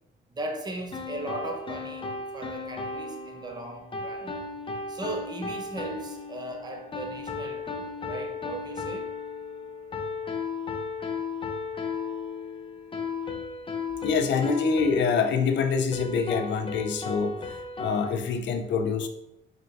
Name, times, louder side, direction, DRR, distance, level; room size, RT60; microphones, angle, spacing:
voice 1, 0.3-2.1 2.3-4.3 4.9-9.1, right 1 dB, 20° right, 2 dB, 0.7 m, -37 dB
sound 1, 0.9-18.2, left 4 dB, 25° left, 0.6 m, -35 dB
voice 2, 14.0-19.1, left 5 dB, 65° left, 7 dB, 0.6 m, -26 dB
4.5 x 3.6 x 2.6 m, 0.83 s
cardioid pair, 90°, 20 cm